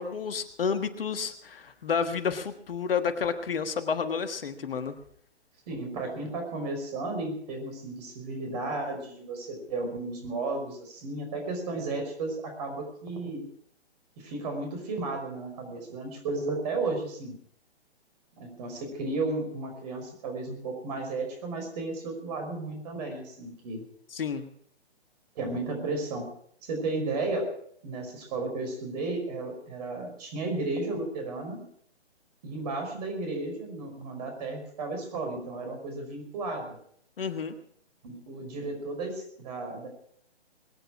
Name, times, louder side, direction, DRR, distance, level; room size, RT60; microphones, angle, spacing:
voice 1, 0.0-4.9 24.1-24.5 37.2-37.5, left 6 dB, 55° left, 10 dB, 1.5 m, -30 dB
voice 2, 5.7-13.5 14.2-17.3 18.4-23.8 25.4-26.3 26.6-27.5 27.8-31.6 32.4-36.8 38.0-39.9, right 3 dB, 35° right, 4 dB, 5.3 m, -33 dB
22.0 x 9.3 x 6.1 m, 0.64 s
figure-of-eight pair, 135°, 34 cm